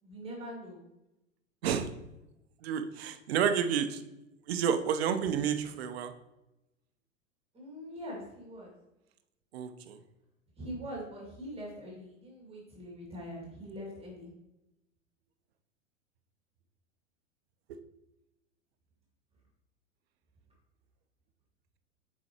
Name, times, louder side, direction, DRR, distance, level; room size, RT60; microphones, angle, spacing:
voice 1, 0.0-0.8 7.5-8.7 10.6-14.3, equal, 15° right, -2 dB, 2.0 m, -43 dB
voice 2, 2.6-4.0 4.5-6.1 9.5-10.0, right 8 dB, 50° right, 9 dB, 0.7 m, -30 dB
7.4 x 4.8 x 2.9 m, 0.93 s
figure-of-eight pair, 90°, 40 cm